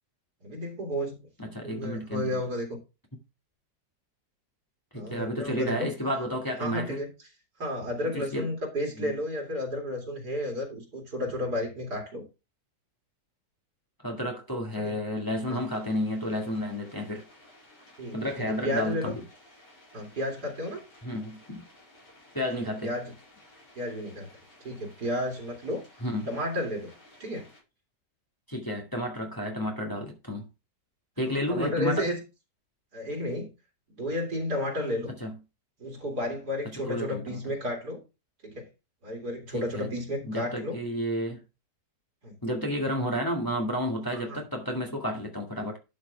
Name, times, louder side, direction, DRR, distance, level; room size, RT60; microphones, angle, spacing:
voice 1, 0.4-1.3 1.6-2.8 4.9-5.9 6.6-7.1 7.6-12.2 14.8-15.0 15.5-15.6 18.0-19.1 19.9-20.8 22.8-23.1 23.8-24.3 24.6-25.8 26.3-26.9 27.2-27.5 31.3-32.2 32.9-33.5 33.9-35.1 35.8-38.0 38.4-38.7 39.0-40.8 42.2-42.4 44.1-44.4, left 1 dB, 65° right, 2.9 m, -32 dB
voice 2, 1.4-2.4 4.9-7.0 8.0-8.5 9.0-9.1 14.0-17.2 18.1-19.2 21.0-21.7 22.3-22.9 26.0-26.3 28.5-30.5 31.2-32.1 35.2-35.3 36.9-37.4 39.5-39.9 40.2-41.4 42.4-45.8, equal, 10° left, 1.8 m, -31 dB
sound 1, 15.6-27.6, left 1 dB, 70° left, 6.0 m, -56 dB
11.5 x 5.8 x 3.3 m
omnidirectional pair, 1.8 m